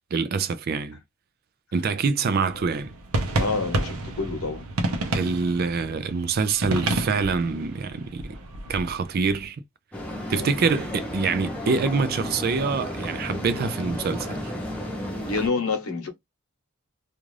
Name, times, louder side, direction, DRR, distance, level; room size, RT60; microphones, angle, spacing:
voice 1, 0.1-1.0 1.7-2.9 5.1-8.4 8.7-9.6 10.3-14.4, right 4 dB, 45° right, 0.3 m, -25 dB
sound 1, 2.5-9.4, right 2 dB, 85° right, 0.7 m, -30 dB
voice 2, 3.4-4.6 10.3-10.6 15.2-16.1, left 4 dB, 85° left, 0.9 m, -28 dB
sound 2, 9.9-15.5, left 1 dB, 5° left, 0.8 m, -33 dB
2.4 x 2.4 x 3.1 m
head